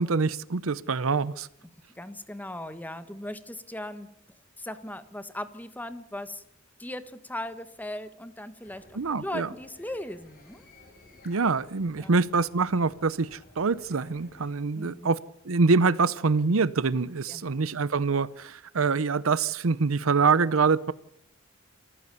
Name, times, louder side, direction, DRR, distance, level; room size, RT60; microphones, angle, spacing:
voice 1, 0.0-1.5 8.9-9.5 11.2-15.2 15.4-20.9, right 4 dB, 75° right, 18 dB, 0.7 m, -25 dB
voice 2, 1.9-4.1 4.6-6.4 6.8-10.6 12.0-12.1 14.7-15.1 17.3-17.7, left 1 dB, 10° left, 11 dB, 1.5 m, -38 dB
sound 1, 8.6-14.5, left 2 dB, 45° left, 6.2 m, -55 dB
27.5 x 15.0 x 6.9 m, 0.76 s
head